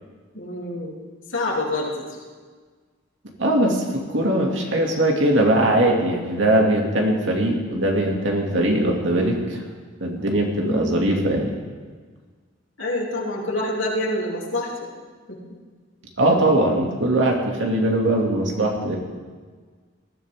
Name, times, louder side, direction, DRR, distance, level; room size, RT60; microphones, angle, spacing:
voice 1, 0.3-1.0 1.3-2.2 10.6-10.9 12.8-14.9 15.3-15.4, left 1 dB, 85° left, -3 dB, 3.2 m, -27 dB
voice 2, 3.4-9.6 10.0-11.5 16.2-19.0, right 1 dB, 75° right, 0 dB, 2.4 m, -20 dB
19.5 x 14.0 x 3.7 m, 1.5 s
head